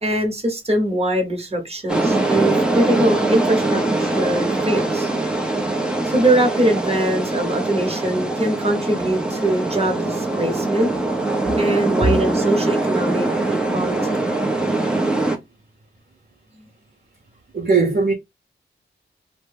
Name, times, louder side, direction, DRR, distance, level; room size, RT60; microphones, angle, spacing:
voice 1, 0.0-5.1 6.0-10.9 11.6-14.2, right 1 dB, 30° right, 1.2 m, -22 dB
Ballena Beach - Costa Rica, 1.9-15.4, right 2 dB, 5° right, 0.8 m, -22 dB
voice 2, 17.5-18.1, right 4 dB, 50° right, 0.9 m, -18 dB
2.9 x 2.2 x 3.3 m
cardioid pair, 65°, 21 cm